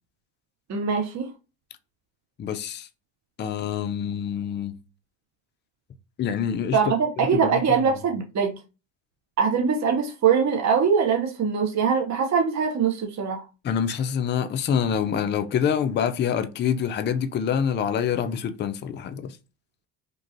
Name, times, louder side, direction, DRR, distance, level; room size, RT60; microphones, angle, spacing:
voice 1, 0.7-1.3 6.7-8.6 9.4-13.4, right 6 dB, 35° right, 0.7 m, -22 dB
voice 2, 2.4-2.9 3.4-4.8 6.2-6.8 7.3-7.6 13.6-19.3, left 8 dB, 25° left, 0.3 m, -26 dB
3.0 x 2.4 x 2.6 m
hypercardioid pair, 60°, 50 cm